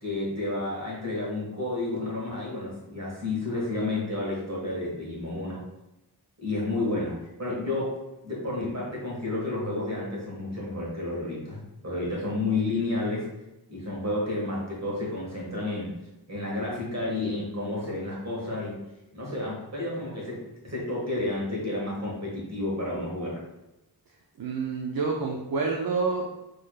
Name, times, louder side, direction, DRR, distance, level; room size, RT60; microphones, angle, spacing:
voice 1, 0.0-5.6 6.4-13.3 13.7-15.9 16.3-18.7 19.1-23.4, left 2 dB, 45° right, -4 dB, 1.5 m, -31 dB
voice 2, 24.4-26.3, right 4 dB, 65° right, -1 dB, 0.5 m, -28 dB
4.5 x 3.1 x 2.3 m, 0.96 s
wide cardioid pair, 65°, 39 cm